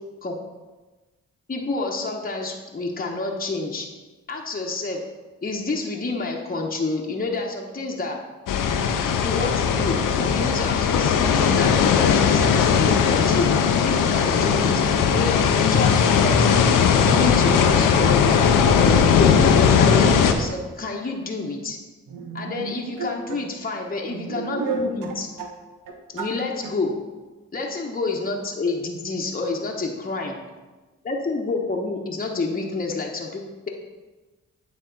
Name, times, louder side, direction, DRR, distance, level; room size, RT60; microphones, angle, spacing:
voice 1, 1.5-3.9 4.3-5.0 5.4-8.2 9.2-13.5 13.8-14.8 15.1-16.6 17.0-19.4 19.8-21.8 22.3-25.3 26.1-26.9 27.5-30.4 31.0-33.7, left 3 dB, 30° left, -1 dB, 1.0 m, -28 dB
sound 1, 8.5-20.3, left 6 dB, 80° left, 0.6 m, -18 dB
sound 2, 22.1-23.4 24.1-25.6 25.9-26.4 26.6-26.7, right 3 dB, 90° right, 0.7 m, -31 dB
9.1 x 3.5 x 3.9 m, 1.2 s
supercardioid pair, 45°, 32 cm